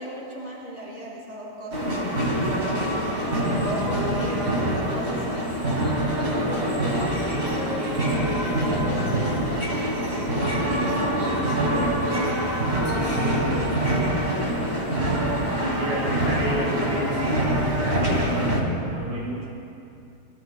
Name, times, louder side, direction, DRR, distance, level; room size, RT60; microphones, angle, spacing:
voice 1, 0.0-1.9 3.2-5.7, equal, 10° left, -7 dB, 4.7 m, -36 dB
sound 1, 1.7-18.6, right 1 dB, 30° right, 1.2 m, -25 dB
voice 2, 6.3-9.1 10.1-12.3 12.6-13.9 14.2-14.8 15.3-19.5, equal, 45° right, -8 dB, 6.0 m, -32 dB
27.0 x 24.0 x 2.2 m, 2.6 s
omnidirectional pair, 5.2 m